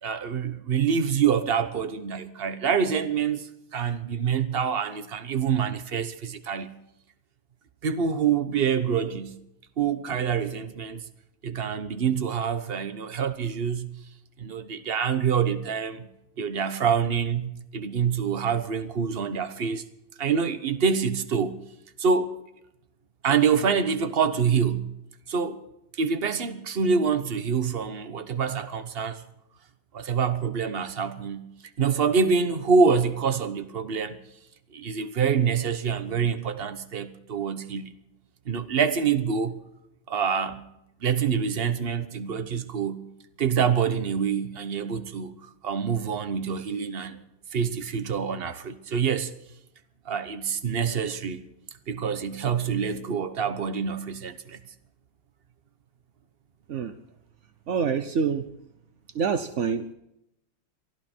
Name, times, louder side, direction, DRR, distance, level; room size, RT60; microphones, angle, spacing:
voice 1, 0.0-6.7 7.8-9.3 9.8-11.0 11.4-14.0 14.4-16.1 16.4-19.8 20.2-21.6 22.0-22.3 23.2-24.9 25.3-25.6 26.0-29.2 29.9-31.4 31.8-34.2 34.7-37.9 38.5-39.6 40.1-40.6 41.0-43.0 43.4-45.3 45.6-47.2 47.5-49.3 50.1-51.4 51.9-54.6, right 6 dB, 45° right, 0.8 m, -26 dB
voice 2, 57.7-58.5 59.1-59.9, right 6 dB, 75° right, 0.6 m, -26 dB
23.5 x 13.5 x 4.5 m
omnidirectional pair, 2.4 m